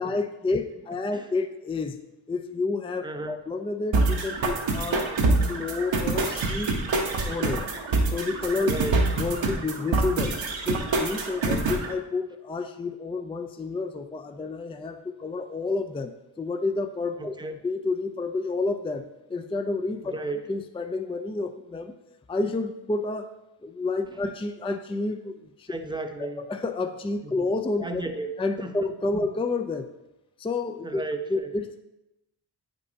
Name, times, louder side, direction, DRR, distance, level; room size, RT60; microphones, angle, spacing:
voice 1, 0.0-2.0 2.3-5.1 5.5-6.8 7.2-7.7 8.1-8.7 9.2-10.4 10.7-17.3 17.6-19.0 19.3-20.1 20.5-21.9 22.3-23.3 23.6-25.7 26.2-28.0 28.4-29.9 30.4-31.0 31.3-31.8, left 3 dB, 15° left, 7 dB, 0.4 m, -30 dB
voice 2, 3.0-3.4 8.7-9.0 11.5-11.6 17.2-17.6 20.0-20.5 24.2-24.3 25.7-26.5 27.2-27.5 27.8-28.9 29.2-29.3 30.8-31.5, right 2 dB, 10° right, 6 dB, 0.8 m, -34 dB
sound 1, 3.9-11.9, right 3 dB, 80° right, 1.0 m, -25 dB
8.4 x 5.3 x 2.8 m, 0.95 s
cardioid pair, 45°, 45 cm